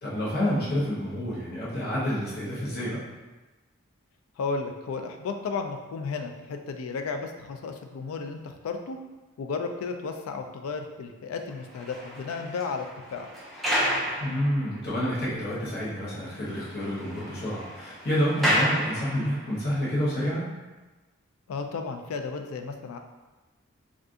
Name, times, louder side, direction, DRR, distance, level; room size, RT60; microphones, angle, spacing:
voice 1, 0.0-3.0 14.2-20.4, equal, 50° left, -8 dB, 0.8 m, -28 dB
voice 2, 4.4-9.0 9.4-12.9 13.1-13.3 21.5-23.0, left 4 dB, 75° left, 6 dB, 0.3 m, -33 dB
sound 1, 11.5-15.0 15.5-15.6 16.0-16.1 16.3-19.6, equal, ahead, 0.4 m, -31 dB
2.5 x 2.4 x 3.6 m, 1.2 s
head